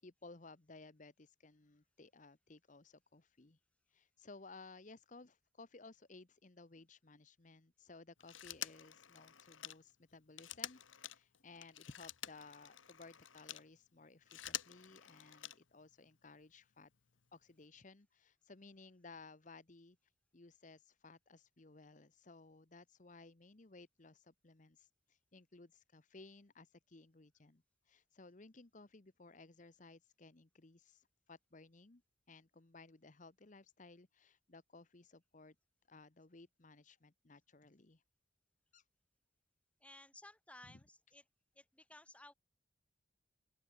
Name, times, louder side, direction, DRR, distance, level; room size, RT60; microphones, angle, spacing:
voice 1, 0.0-3.6 3.9-16.9 17.3-20.0 20.3-32.0 32.3-35.5 35.9-38.0 38.7-38.8 40.6-40.8, left 3 dB, 40° left, 1.0 m, -58 dB
Telephone, 8.2-13.7 14.1-15.9 17.1-17.2, left 12 dB, 85° left, 1.6 m, -48 dB
voice 2, 39.8-41.2 41.5-42.3, left 1 dB, 5° left, 2.8 m, -58 dB
open air
head